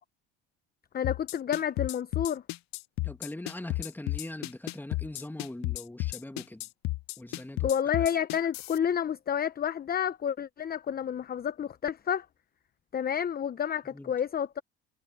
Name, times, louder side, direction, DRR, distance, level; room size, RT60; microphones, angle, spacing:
voice 1, 0.9-2.4 7.6-12.3 12.9-14.6, left 8 dB, 25° left, 0.9 m, -30 dB
sound 1, 1.0-8.8, left 20 dB, 55° left, 1.0 m, -32 dB
voice 2, 3.0-6.7 7.2-7.7 13.9-14.1, left 1 dB, 5° left, 2.3 m, -41 dB
hypercardioid pair, 80°, 33 cm